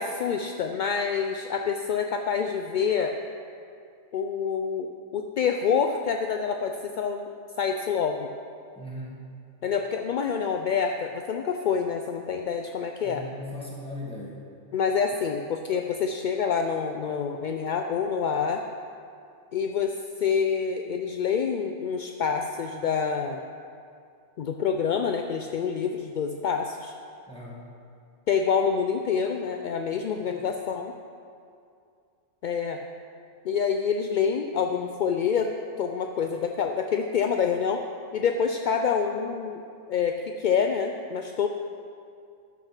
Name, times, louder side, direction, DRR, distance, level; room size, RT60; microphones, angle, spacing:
voice 1, 0.0-3.1 4.1-7.3 7.6-8.3 9.6-13.2 14.7-18.6 19.5-19.9 20.2-23.4 24.4-26.9 28.3-30.9 32.4-32.8 33.4-35.5 35.8-37.8 38.1-39.6 39.9-41.5, left 6 dB, 60° left, 4 dB, 0.5 m, -27 dB
voice 2, 8.8-9.2 13.0-14.4 27.3-27.6, left 1 dB, 5° left, -6 dB, 2.0 m, -38 dB
13.0 x 5.9 x 5.9 m, 2.4 s
omnidirectional pair, 1.3 m